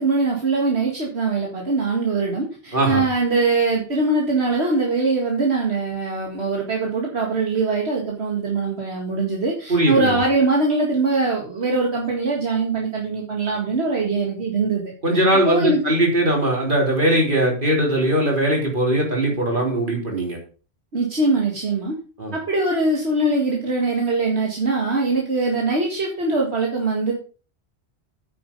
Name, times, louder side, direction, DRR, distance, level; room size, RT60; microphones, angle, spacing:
voice 1, 0.0-15.8 20.9-21.9 22.3-27.1, right 3 dB, 75° right, -1 dB, 2.3 m, -22 dB
voice 2, 9.7-10.2 15.0-20.4 22.2-22.3, right 1 dB, 50° right, 0 dB, 4.0 m, -20 dB
9.3 x 7.6 x 5.4 m, 0.37 s
omnidirectional pair, 1.1 m